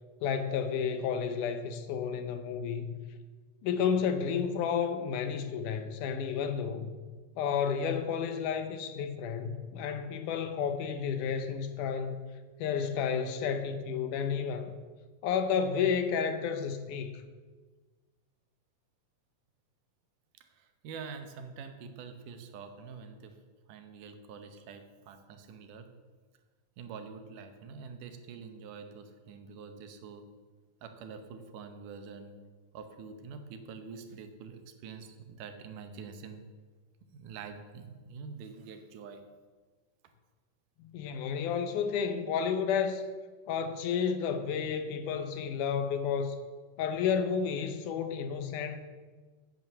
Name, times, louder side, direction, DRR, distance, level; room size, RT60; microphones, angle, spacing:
voice 1, 0.2-3.0 3.6-6.9 7.4-12.2 12.6-14.7 15.2-17.2 40.8-43.0 43.5-46.4 46.8-48.8, left 7 dB, 75° left, 8 dB, 2.3 m, -31 dB
voice 2, 20.4-23.3 23.7-25.9 26.8-30.2 30.8-32.3 32.7-36.5 37.1-39.2, right 5 dB, 80° right, 7 dB, 2.5 m, -46 dB
9.1 x 8.4 x 6.9 m, 1.4 s
omnidirectional pair, 3.8 m